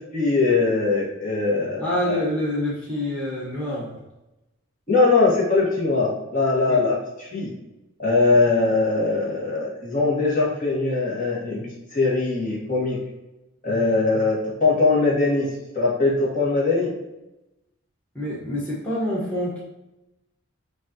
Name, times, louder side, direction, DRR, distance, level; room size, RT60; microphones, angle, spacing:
voice 1, 0.1-2.3 4.9-7.5 8.0-11.6 11.9-13.0 13.6-16.9, left 3 dB, 40° left, -5 dB, 1.6 m, -21 dB
voice 2, 1.8-4.0 6.7-6.8 18.1-19.6, left 1 dB, 5° left, -7 dB, 1.2 m, -27 dB
7.0 x 2.7 x 2.8 m, 0.96 s
head